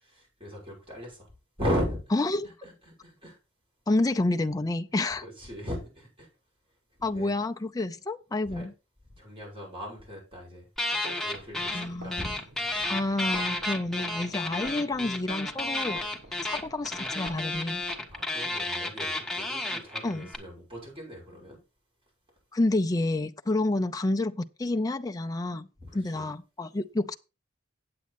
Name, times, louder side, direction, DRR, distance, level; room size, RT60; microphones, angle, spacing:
voice 1, 0.2-1.3 1.6-2.0 2.6-3.4 5.2-6.3 7.0-7.3 8.5-8.7 9.2-12.3 12.6-13.1 18.1-21.6 25.8-26.3, equal, 30° right, 6.0 m, -37 dB
voice 2, 2.1-2.5 3.9-5.2 7.0-8.7 11.7-12.3 12.9-16.0 16.4-17.8 20.0-20.3 22.5-25.7 25.9-27.1, left 2 dB, 20° left, 0.5 m, -29 dB
sound 1, 10.8-11.9 12.1-20.4, left 2 dB, ahead, 1.5 m, -32 dB
sound 2, 11.3-18.6, right 1 dB, 75° right, 2.9 m, -50 dB
8.6 x 8.3 x 4.2 m
head